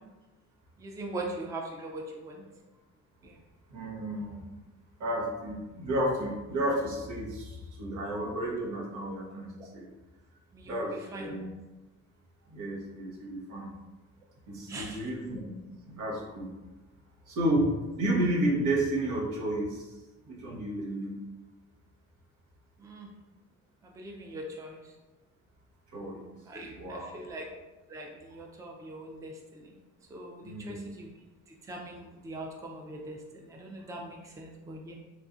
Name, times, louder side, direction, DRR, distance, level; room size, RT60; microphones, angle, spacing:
voice 1, 0.8-2.4 3.2-3.4 10.5-11.3 14.7-15.1 22.8-23.1 23.8-24.8 26.5-27.5 27.9-29.8 30.1-31.1 31.7-34.9, right 2 dB, 10° right, 0 dB, 0.4 m, -41 dB
voice 2, 3.7-4.5 5.0-9.9 10.6-11.5 12.5-13.7 14.5-15.4 15.9-16.5 17.3-19.9 20.3-21.2 25.9-26.2 26.8-27.2 30.4-30.8, right 1 dB, 75° right, -2 dB, 0.9 m, -32 dB
3.1 x 2.5 x 2.4 m, 1.1 s
cardioid pair, 90°, 30 cm